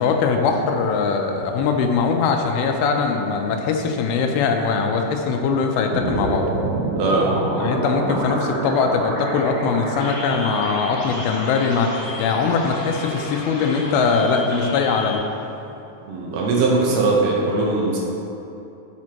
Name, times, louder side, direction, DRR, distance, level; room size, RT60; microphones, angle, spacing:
voice 1, 0.0-6.5 7.5-11.9 12.2-15.2 16.9-17.0, left 5 dB, 90° left, 4 dB, 2.5 m, -21 dB
sound 1, 5.9-14.2, right 2 dB, 60° right, 2.7 m, -28 dB
voice 2, 7.0-7.3 16.1-18.0, right 3 dB, 85° right, -3 dB, 1.5 m, -20 dB
sound 2, 10.0-15.2, left 2 dB, 70° left, 2.8 m, -34 dB
10.5 x 5.1 x 2.9 m, 2.9 s
omnidirectional pair, 4.3 m